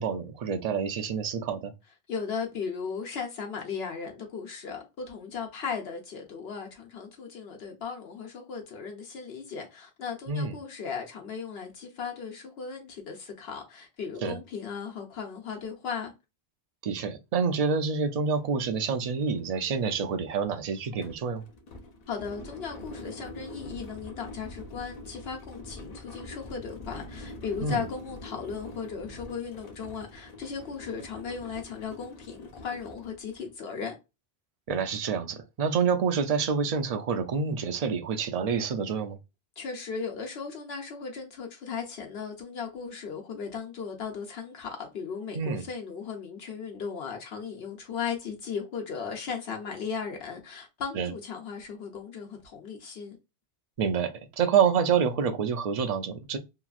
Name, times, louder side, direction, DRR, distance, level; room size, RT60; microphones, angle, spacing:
voice 1, 0.0-1.7 10.3-10.6 14.2-14.4 16.8-21.4 27.6-27.8 34.7-39.2 45.3-45.6 51.0-51.1 53.8-56.4, right 6 dB, 50° right, 0.5 m, -27 dB
voice 2, 2.1-16.1 22.1-34.0 39.6-53.2, left 6 dB, 75° left, 0.9 m, -37 dB
sound 1, 18.3-18.4 18.7-33.5, left 1 dB, 50° left, 0.5 m, -45 dB
2.9 x 2.4 x 2.3 m
omnidirectional pair, 1.1 m